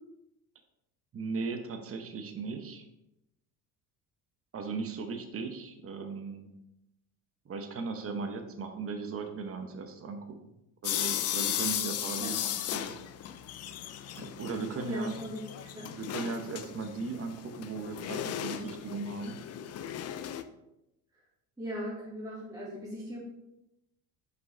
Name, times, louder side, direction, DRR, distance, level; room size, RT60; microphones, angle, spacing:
voice 1, 1.1-2.8 4.5-6.5 7.4-10.5 10.8-13.0 14.2-15.1 15.7-19.4, right 4 dB, 30° right, 6 dB, 0.9 m, -37 dB
sound 1, 10.8-20.4, left 11 dB, 35° left, 0.4 m, -36 dB
voice 2, 14.7-15.9 21.6-23.2, equal, 5° right, -6 dB, 1.8 m, -39 dB
5.4 x 5.4 x 3.2 m, 0.87 s
hypercardioid pair, 75°, 46 cm